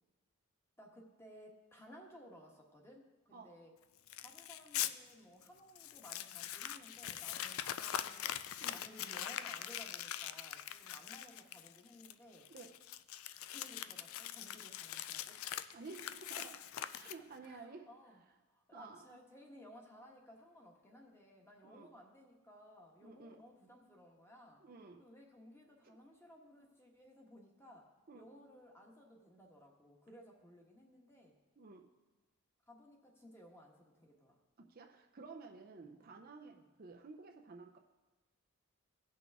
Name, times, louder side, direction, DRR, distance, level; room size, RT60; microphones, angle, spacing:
voice 1, 0.8-3.7 4.2-8.4 8.7-12.5 13.5-15.4 16.9-18.2 18.5-24.6 25.0-31.3 32.7-34.4 36.0-36.1 36.5-36.7, equal, 10° left, 0 dB, 1.3 m, -58 dB
Crumpling crinkling, 4.1-4.9 5.4-5.5 5.8-17.5, left 11 dB, 70° left, 0.4 m, -42 dB
voice 2, 15.7-17.9 18.7-19.1 21.6-21.9 23.0-23.4 24.6-25.1 28.1-28.2 31.6-31.9 34.6-37.8, right 4 dB, 45° right, 3 dB, 0.6 m, -53 dB
17.5 x 6.1 x 3.5 m, 1.2 s
head